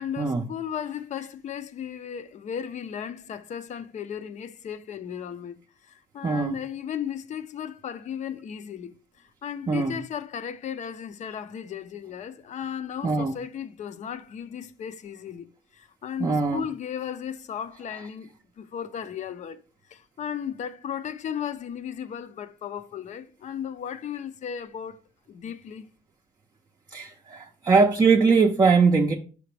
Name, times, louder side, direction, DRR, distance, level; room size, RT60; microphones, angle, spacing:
voice 1, 0.0-15.5 15.7-19.6 19.9-25.0 25.3-25.8, left 8 dB, 45° left, 0.5 m, -35 dB
voice 2, 6.2-6.5 9.7-10.0 13.0-13.3 16.2-16.6 26.9-29.1, right 4 dB, 25° right, 0.5 m, -21 dB
5.7 x 5.0 x 3.3 m
cardioid pair, 110°, 17 cm